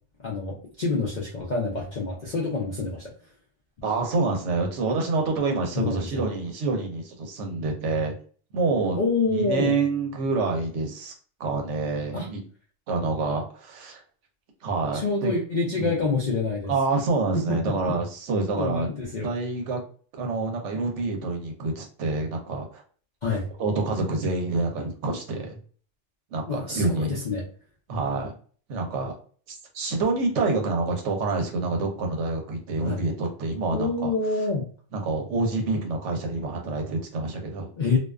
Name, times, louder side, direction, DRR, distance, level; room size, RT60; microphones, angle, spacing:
voice 1, 0.2-3.1 5.8-6.3 9.0-9.7 12.1-12.3 14.9-16.7 17.5-17.6 18.5-19.3 23.2-23.5 26.5-27.4 32.8-33.0 33.7-34.6 37.8-38.0, left 3 dB, 60° left, -3 dB, 0.4 m, -27 dB
voice 2, 3.8-8.1 8.5-11.1 11.4-12.4 12.9-14.0 14.6-15.3 15.7-16.0 16.7-18.9 19.2-19.8 20.1-22.8 23.6-25.6 26.3-27.2 27.9-28.3 28.7-29.1 29.5-34.1 34.9-37.7, right 3 dB, 70° right, 3 dB, 0.9 m, -27 dB
2.4 x 2.3 x 2.2 m, 0.43 s
omnidirectional pair, 1.3 m